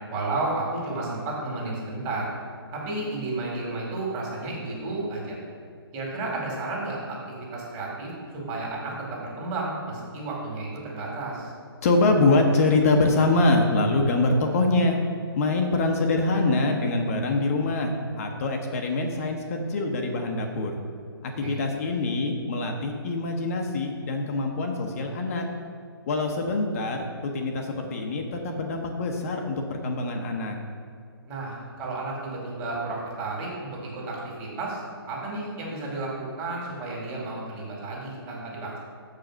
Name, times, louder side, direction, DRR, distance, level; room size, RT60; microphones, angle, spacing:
voice 1, 0.1-2.3 2.7-5.4 5.9-7.2 7.5-11.5 21.4-21.6 31.3-34.8 35.1-38.8, right 2 dB, 25° right, -3 dB, 2.2 m, -32 dB
voice 2, 11.8-15.0 15.3-20.7 21.2-25.4 26.1-30.6, left 2 dB, 35° left, 3 dB, 0.8 m, -24 dB
6.8 x 5.0 x 6.3 m, 2.3 s
hypercardioid pair, 150°, 13 cm